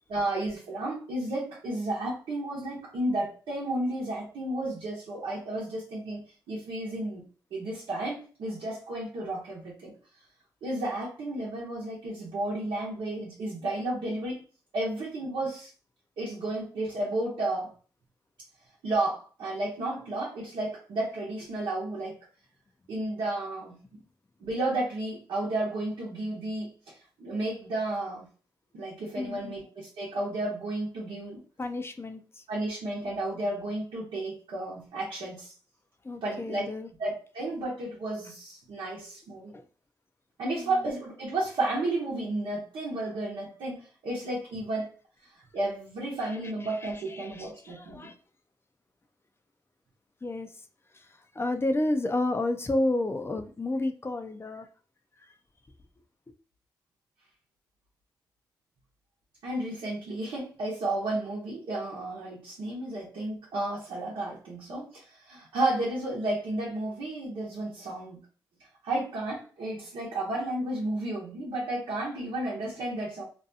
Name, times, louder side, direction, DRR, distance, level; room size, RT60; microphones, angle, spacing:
voice 1, 0.1-6.2 6.5-7.2 7.5-9.9 10.6-14.4 14.7-15.7 16.2-17.7 18.8-22.2 22.9-23.8 24.4-28.3 28.7-31.4 32.5-35.5 36.2-36.7 37.0-39.5 40.4-44.9 45.5-48.1 59.4-68.2 68.8-73.2, right 2 dB, 85° right, -6 dB, 0.9 m, -32 dB
voice 2, 29.2-29.6 31.6-32.4 36.0-36.9 39.5-39.6 40.4-40.9 46.8-48.2 50.2-50.5 50.9-51.1 51.3-54.7, left 2 dB, 30° left, 7 dB, 0.5 m, -31 dB
2.6 x 2.3 x 2.6 m, 0.38 s
supercardioid pair, 50°, 9 cm